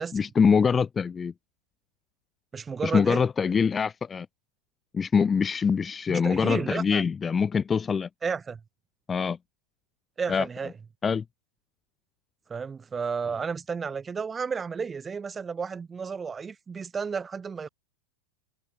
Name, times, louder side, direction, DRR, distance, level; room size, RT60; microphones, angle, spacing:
voice 1, 0.0-1.3 2.8-4.3 4.9-8.1 9.1-9.4 10.3-10.5 11.0-11.2, left 6 dB, 20° left, 0.7 m, -24 dB
voice 2, 2.5-3.2 6.1-7.0 8.2-8.6 10.2-10.7 12.5-17.7, right 5 dB, 20° right, 3.1 m, -32 dB
hypercardioid pair, 95°, 0 cm